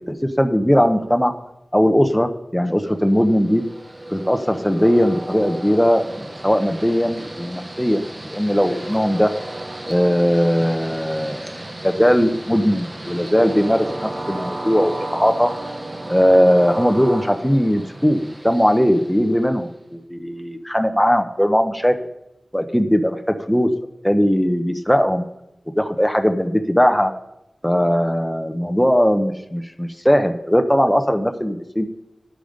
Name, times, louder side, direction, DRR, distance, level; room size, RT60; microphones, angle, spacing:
voice 1, 0.1-1.3 1.7-3.6 4.1-9.3 9.9-11.5 11.8-15.5 16.1-21.9 22.5-23.2 23.5-23.7 24.0-25.2 25.8-27.1 27.6-31.9, equal, 5° left, 6 dB, 0.8 m, -19 dB
Train, 3.0-19.7, right 1 dB, 25° right, 0.9 m, -34 dB
12.5 x 5.1 x 5.2 m, 0.87 s
cardioid pair, 45°, 0 cm